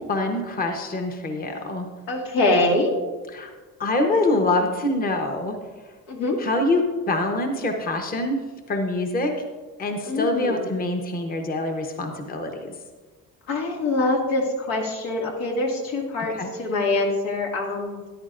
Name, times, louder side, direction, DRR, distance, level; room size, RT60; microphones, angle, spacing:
voice 1, 0.0-1.9 3.3-3.5 3.8-5.5 6.4-8.4 8.7-9.3 9.8-12.7 16.4-16.5, left 2 dB, 25° left, 3 dB, 0.9 m, -25 dB
voice 2, 2.1-2.9 6.1-6.4 10.1-10.7 13.5-18.0, left 2 dB, 85° left, 0 dB, 2.2 m, -24 dB
13.5 x 10.5 x 2.5 m, 1.3 s
cardioid pair, 145°, 33 cm